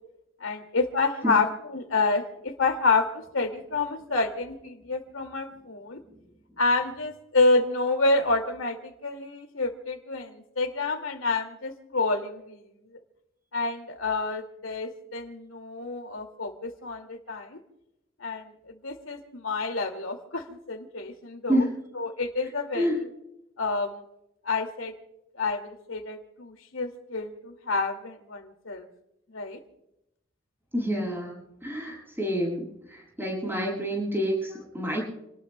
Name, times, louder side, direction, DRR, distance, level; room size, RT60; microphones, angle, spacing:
voice 1, 0.4-6.0 6.6-13.0 13.5-17.6 18.2-21.6 21.9-22.9 23.6-24.0 24.4-24.9 25.3-28.9 29.3-29.6, left 3 dB, 90° left, 5 dB, 2.4 m, -28 dB
voice 2, 30.7-35.1, equal, 10° right, -2 dB, 7.2 m, -28 dB
29.5 x 19.0 x 2.3 m, 0.86 s
head